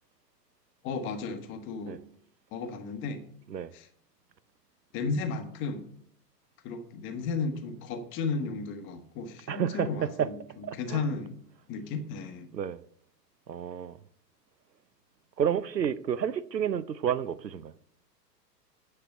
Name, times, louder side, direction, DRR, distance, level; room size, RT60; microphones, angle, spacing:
voice 1, 0.8-2.0 2.5-3.3 3.7-3.9 4.9-5.9 6.6-11.4 11.7-12.5, left 4 dB, 25° left, 1.0 m, -34 dB
voice 2, 9.5-10.3 10.6-11.0 12.5-12.8 13.5-14.0 15.4-17.7, right 8 dB, 85° right, 0.6 m, -30 dB
9.7 x 6.7 x 5.4 m
figure-of-eight pair, 105°, 49 cm